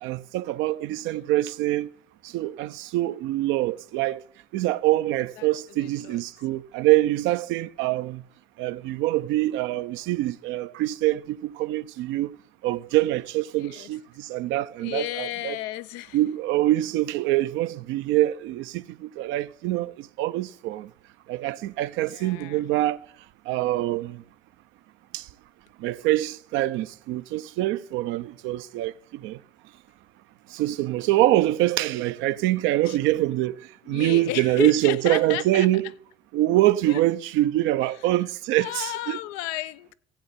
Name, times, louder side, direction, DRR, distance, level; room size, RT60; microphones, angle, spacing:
voice 1, 0.0-1.9 2.2-4.2 4.5-8.2 8.6-12.4 12.6-15.6 16.1-20.9 21.3-23.0 23.5-24.2 25.1-25.3 25.8-29.4 30.5-35.9 36.3-39.2, right 16 dB, 70° right, 0.5 m, -25 dB
voice 2, 5.8-6.2 13.6-13.9 14.8-16.2 22.0-22.6 32.9-33.0 33.9-35.7 36.9-37.0 38.6-39.9, left 16 dB, 80° left, 0.4 m, -33 dB
15.5 x 7.8 x 4.1 m
hypercardioid pair, 65°, 21 cm